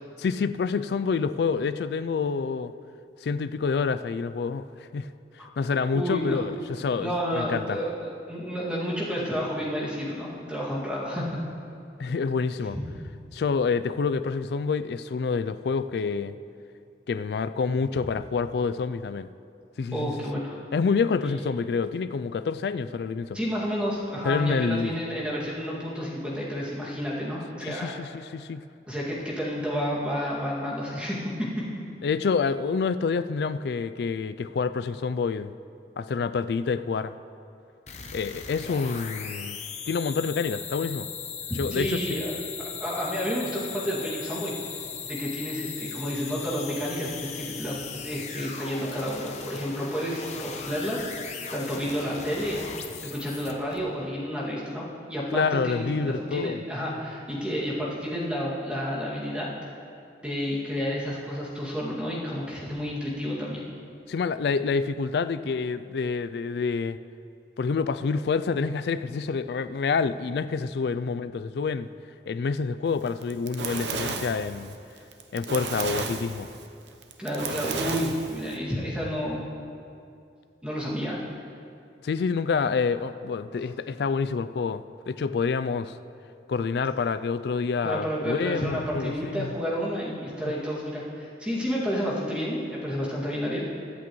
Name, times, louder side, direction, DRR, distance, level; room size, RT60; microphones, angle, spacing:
voice 1, 0.2-2.7 3.2-5.1 5.6-7.8 12.0-12.8 13.3-16.3 17.1-19.3 19.8-20.1 20.7-23.4 24.2-24.9 27.6-28.6 32.0-35.5 36.0-37.1 38.1-39.6 39.9-41.1 41.6-42.0 55.3-56.6 64.1-67.0 67.6-71.9 72.3-74.7 75.3-76.5 82.0-86.0 86.5-89.5, left 5 dB, 70° left, 13 dB, 0.3 m, -27 dB
voice 2, 5.9-6.4 7.0-11.4 12.7-12.8 19.9-20.6 21.2-21.3 23.3-27.9 28.9-31.6 41.5-44.5 45.1-52.6 53.0-59.5 60.2-63.6 77.2-79.4 80.6-81.2 87.8-93.7, equal, 5° right, -7 dB, 2.2 m, -30 dB
sound 1, 37.9-53.8, left 6 dB, 40° left, 0.8 m, -38 dB
Fire, 73.1-78.6, right 4 dB, 85° right, 0.8 m, -33 dB
22.5 x 8.3 x 3.1 m, 2.5 s
head